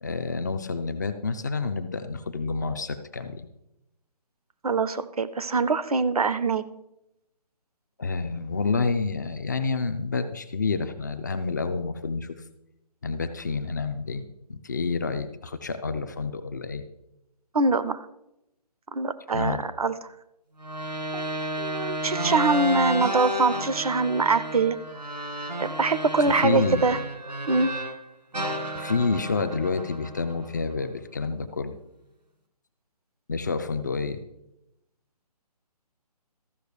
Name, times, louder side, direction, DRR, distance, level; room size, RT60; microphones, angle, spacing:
voice 1, 0.0-3.5 8.0-12.3 13.0-14.2 14.5-16.8 19.3-19.6 26.4-26.8 28.8-31.7 33.3-34.2, left 4 dB, 25° left, 9 dB, 0.4 m, -28 dB
voice 2, 4.6-6.6 17.5-18.0 18.9-19.9 21.1-21.3 21.6-24.8 25.6-27.0 27.5-27.7, right 3 dB, 65° right, 13 dB, 0.7 m, -24 dB
sound 1, 20.6-28.0 28.3-30.7, right 1 dB, 80° right, 2.0 m, -31 dB
13.5 x 6.3 x 4.8 m, 0.86 s
figure-of-eight pair, 145°, 21 cm